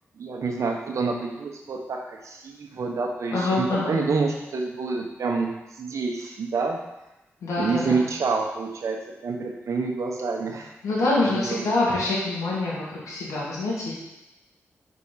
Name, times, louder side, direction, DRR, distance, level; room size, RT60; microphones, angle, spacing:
voice 1, 0.2-6.8 7.6-10.7 11.2-11.7, right 4 dB, 70° right, 2 dB, 1.0 m, -28 dB
voice 2, 3.3-3.9 7.4-8.0 10.8-13.9, left 2 dB, 85° left, -6 dB, 1.6 m, -25 dB
4.7 x 4.1 x 5.7 m, 0.95 s
supercardioid pair, 45°, 5 cm